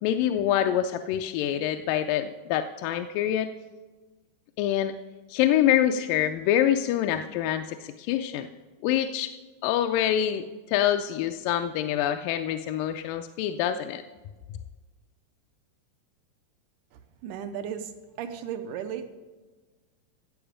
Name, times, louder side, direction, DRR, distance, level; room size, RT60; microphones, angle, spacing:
voice 1, 0.0-3.5 4.6-5.0 5.3-8.5 8.8-9.3 9.6-14.0, left 11 dB, 80° left, 7 dB, 2.1 m, -26 dB
voice 2, 16.9-17.9 18.2-19.1, right 8 dB, 80° right, 8 dB, 2.0 m, -35 dB
16.0 x 7.9 x 5.0 m, 1.3 s
omnidirectional pair, 4.0 m